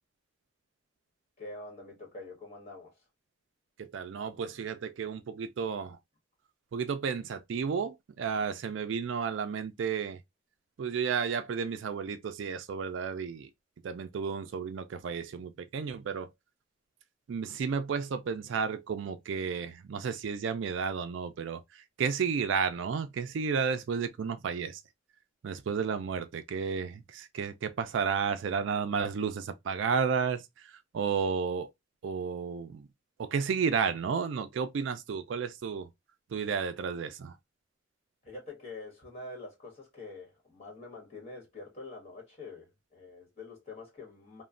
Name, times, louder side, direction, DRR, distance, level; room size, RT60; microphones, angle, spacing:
voice 1, 1.4-3.0 38.2-44.4, left 3 dB, 35° left, 1.3 m, -45 dB
voice 2, 3.9-6.0 6.7-10.2 10.8-13.5 13.8-16.3 17.3-24.8 25.4-31.7 32.0-32.9 33.2-35.9 36.3-37.3, right 6 dB, 70° right, 0.4 m, -32 dB
3.0 x 2.1 x 2.4 m
head